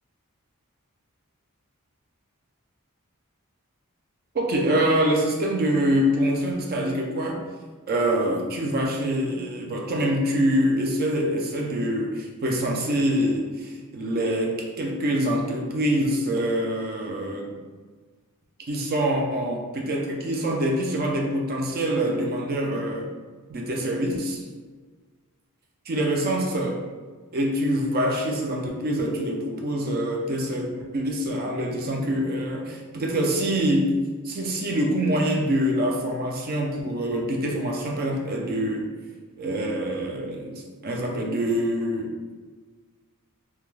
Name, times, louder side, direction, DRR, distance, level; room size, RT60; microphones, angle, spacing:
voice 1, 4.3-7.4 7.9-17.5 18.7-23.1 23.5-24.5 25.9-26.8 27.3-33.9 34.2-38.9 39.4-42.1, right 1 dB, 45° right, 1 dB, 0.4 m, -25 dB
2.2 x 2.2 x 3.1 m, 1.4 s
head